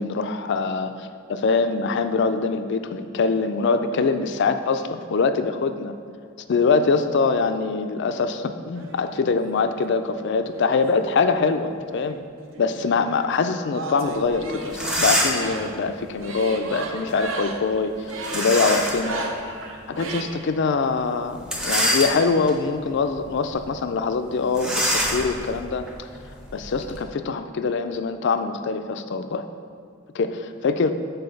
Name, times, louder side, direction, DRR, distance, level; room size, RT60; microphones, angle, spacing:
voice 1, 0.0-6.0 6.5-12.2 12.6-19.2 19.9-26.1 26.5-29.5 30.1-30.9, left 4 dB, 50° left, 9 dB, 0.3 m, -23 dB
sound 1, 8.7-9.6 10.4-11.6 11.9-20.2, right 3 dB, 60° right, 0.6 m, -34 dB
sound 2, 14.3-14.4 14.7-15.6 18.2-19.1 19.6-19.7 21.4-22.5 23.1-23.3 23.5-23.7 24.5-27.0, equal, 5° right, 0.5 m, -25 dB
6.8 x 4.0 x 5.2 m, 2.2 s
head